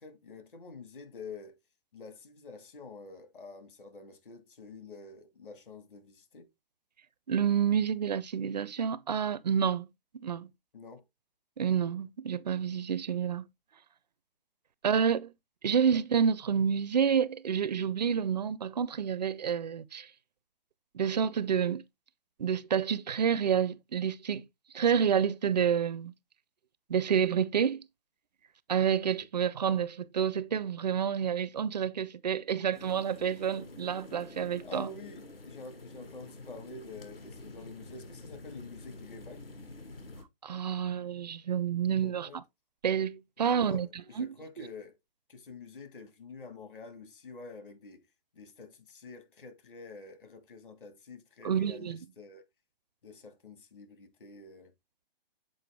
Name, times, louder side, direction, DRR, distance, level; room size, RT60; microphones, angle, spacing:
voice 1, 0.0-1.6 1.9-6.5 10.7-11.0 15.7-15.8 29.4-29.5 34.6-39.4 42.0-42.4 43.4-45.0 45.3-48.0 48.3-52.4 53.0-54.7, left 3 dB, 60° left, 2.1 m, -48 dB
voice 2, 7.3-9.9 10.2-10.5 11.6-13.5 14.8-15.3 15.6-20.1 20.9-21.8 22.4-24.5 24.7-26.1 26.9-27.8 28.7-34.9 40.4-42.4 42.8-43.9 44.2-44.3 44.6-44.7 51.4-52.0, right 7 dB, 45° right, 0.5 m, -29 dB
sound 1, 32.7-40.2, left 2 dB, 75° left, 2.0 m, -48 dB
7.7 x 4.6 x 3.5 m
figure-of-eight pair, 130°, 29 cm